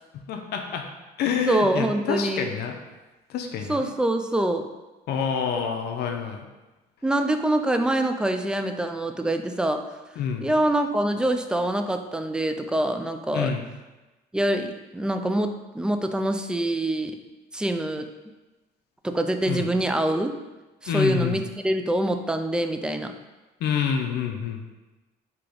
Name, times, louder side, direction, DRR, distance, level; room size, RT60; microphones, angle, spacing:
voice 1, 0.3-0.9 1.2-2.7 3.3-3.8 5.1-6.5 10.2-10.5 13.3-13.7 19.5-19.7 20.9-21.4 23.6-24.6, left 7 dB, 70° left, 4 dB, 0.6 m, -27 dB
voice 2, 1.5-2.5 3.7-4.6 7.0-9.8 10.4-13.5 14.3-17.2 17.5-18.1 19.0-20.4 20.8-23.1, right 1 dB, 5° right, 6 dB, 0.3 m, -25 dB
3.8 x 2.9 x 4.8 m, 1.1 s
cardioid pair, 110°, 17 cm